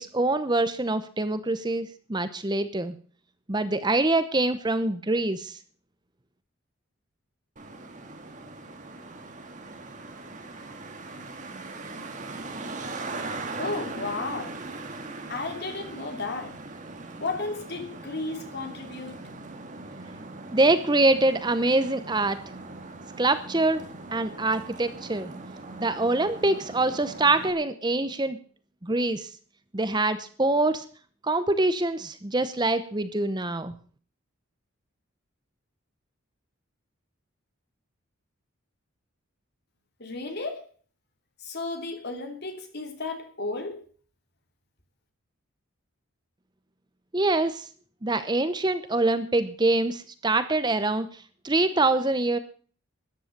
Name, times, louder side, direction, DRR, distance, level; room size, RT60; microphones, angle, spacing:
voice 1, 0.0-2.9 3.5-5.6 20.5-22.4 23.2-23.8 24.1-25.3 25.8-28.4 28.8-29.3 29.7-30.8 31.2-33.7 47.1-47.7 48.0-52.4, right 2 dB, 20° right, 0.8 m, -25 dB
Traffic noise roadway noise, 7.6-27.5, right 3 dB, 35° right, 1.8 m, -40 dB
voice 2, 13.6-14.6 15.3-16.6 17.2-19.2 40.0-40.7 41.4-43.8, left 3 dB, 50° left, 2.9 m, -33 dB
13.5 x 10.0 x 6.7 m
head